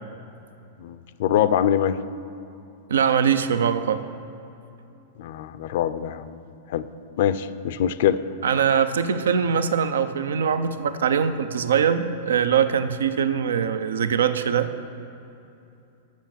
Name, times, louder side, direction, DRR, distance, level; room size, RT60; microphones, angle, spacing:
voice 1, 0.8-2.0 5.2-6.4 6.7-6.9 7.2-8.2, left 10 dB, 65° left, 13 dB, 0.4 m, -23 dB
voice 2, 2.9-4.0 8.4-14.7, right 7 dB, 85° right, 12 dB, 0.4 m, -22 dB
7.3 x 6.2 x 7.3 m, 2.8 s
hypercardioid pair, 120°, 0 cm